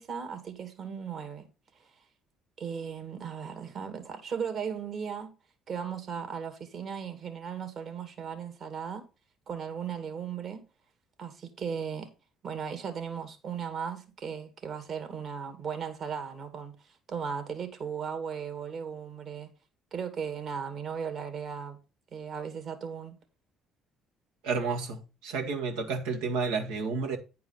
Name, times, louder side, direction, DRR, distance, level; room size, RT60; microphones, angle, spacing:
voice 1, 0.0-1.5 1.8-1.9 2.6-5.3 5.7-9.0 9.5-10.6 11.2-12.1 12.4-16.7 17.1-19.5 19.9-21.8 22.1-23.2, right 7 dB, 55° right, 2.4 m, -36 dB
voice 2, 24.4-27.2, right 4 dB, 80° right, 1.8 m, -31 dB
9.7 x 4.7 x 5.7 m
hypercardioid pair, 65°, 0 cm